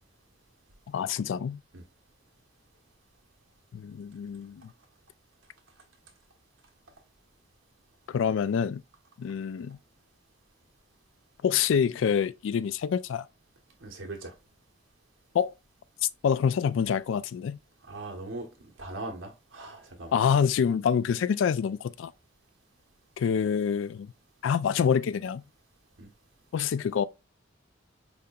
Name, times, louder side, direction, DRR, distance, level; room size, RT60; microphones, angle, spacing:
voice 1, 0.9-1.6 3.7-4.7 8.1-8.8 9.2-9.8 11.4-13.3 15.3-15.5 16.0-17.6 20.1-22.1 23.2-24.1 24.4-25.4 26.5-27.0, left 7 dB, 75° left, 0.3 m, -26 dB
voice 2, 13.8-14.3 17.8-20.1 26.0-26.1, right 2 dB, 80° right, 1.1 m, -40 dB
5.1 x 2.8 x 2.3 m
head